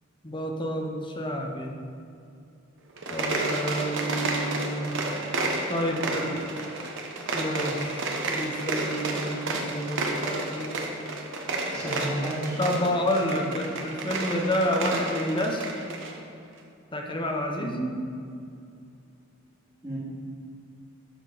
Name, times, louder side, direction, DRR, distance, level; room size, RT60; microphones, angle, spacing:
voice 1, 0.2-1.7 3.1-4.9 5.7-6.5 7.3-10.7 11.8-12.2 12.6-15.7 16.9-17.7, equal, 25° left, 2 dB, 0.9 m, -29 dB
sound 1, 2.9-16.2, right 2 dB, 65° right, 1.0 m, -31 dB
voice 2, 11.7-12.9 13.3-13.5 17.6-17.9 19.8-20.0, right 1 dB, 15° right, -7 dB, 2.4 m, -33 dB
12.0 x 4.5 x 5.1 m, 2.5 s
head